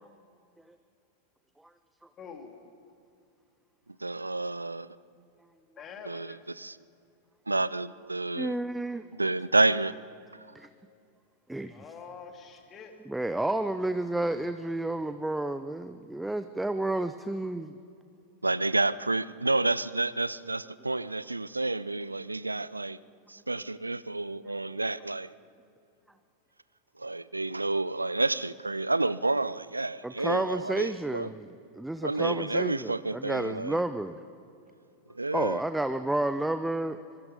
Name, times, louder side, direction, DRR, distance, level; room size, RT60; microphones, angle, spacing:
voice 1, 2.2-2.6 5.8-6.4 11.7-12.9, left 6 dB, 25° left, 2.8 m, -45 dB
voice 2, 4.0-4.9 6.1-6.8 7.5-8.5 9.1-9.9 18.4-23.0 23.3-25.3 27.0-31.3 32.0-33.8 35.1-35.6, right 2 dB, 80° right, 0.5 m, -29 dB
voice 3, 8.3-9.0 10.5-10.7 11.5-11.8 13.1-17.7 30.0-34.2 35.3-37.0, right 1 dB, 5° right, 0.6 m, -31 dB
24.5 x 22.5 x 5.3 m
figure-of-eight pair, 90°, 0 cm